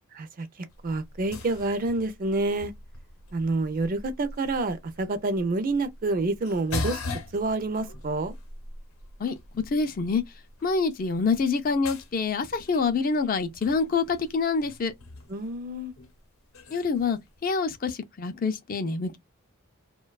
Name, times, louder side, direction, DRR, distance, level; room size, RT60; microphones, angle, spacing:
sound 1, 0.7-17.7, left 3 dB, 75° left, 0.7 m, -42 dB
voice 1, 0.8-2.7 3.3-7.0 7.3-8.3 15.3-15.9, right 2 dB, 40° right, 0.4 m, -28 dB
voice 2, 9.2-10.2 10.6-14.9 16.7-19.2, left 4 dB, 40° left, 0.4 m, -26 dB
2.6 x 2.2 x 2.2 m
head